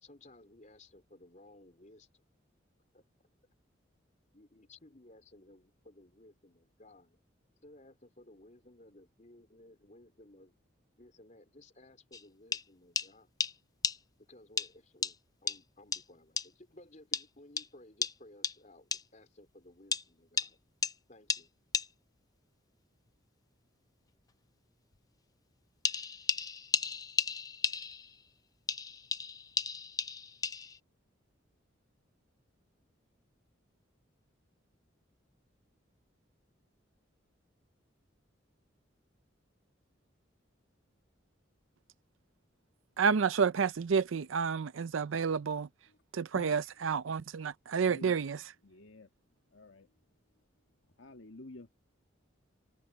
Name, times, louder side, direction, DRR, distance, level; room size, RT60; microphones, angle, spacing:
voice 1, 0.0-2.2 2.9-3.0 4.3-7.2 7.6-10.6 11.0-13.3 14.3-15.2 15.4-20.6 21.1-21.5, left 1 dB, 40° left, 3.9 m, -58 dB
sound 1, 12.1-12.2 12.5-12.6 13.0-13.1 13.4-13.5 13.8-14.0 14.6-14.7 15.0-15.1 15.5-15.6 15.9-16.0 16.4-16.5 17.1-17.2 17.6-17.7 18.0-18.1 18.4-18.6 18.9-19.0 19.9-20.0 20.4-20.5 20.8-20.9 21.3-21.4 21.7-21.9 25.9-28.2 28.7-30.8, left 6 dB, 20° left, 0.5 m, -33 dB
voice 2, 43.0-45.7 46.1-48.4, right 6 dB, 85° right, 0.5 m, -30 dB
voice 3, 48.6-49.1 49.5-49.9 51.0-51.7, left 2 dB, 80° left, 1.9 m, -50 dB
head